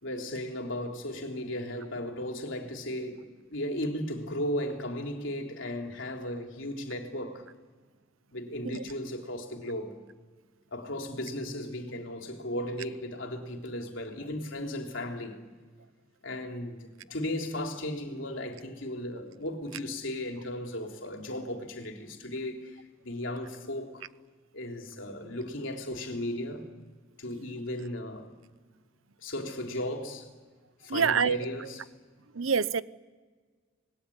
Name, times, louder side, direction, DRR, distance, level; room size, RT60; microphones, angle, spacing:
voice 1, 0.0-7.4 8.3-9.9 10.7-15.4 16.2-24.0 24.5-26.7 27.2-28.3 29.2-30.3 30.8-31.8, left 1 dB, 70° left, 3.4 m, -36 dB
voice 2, 30.9-31.4 32.4-32.8, right 6 dB, 85° right, 0.9 m, -25 dB
26.0 x 20.5 x 10.0 m
head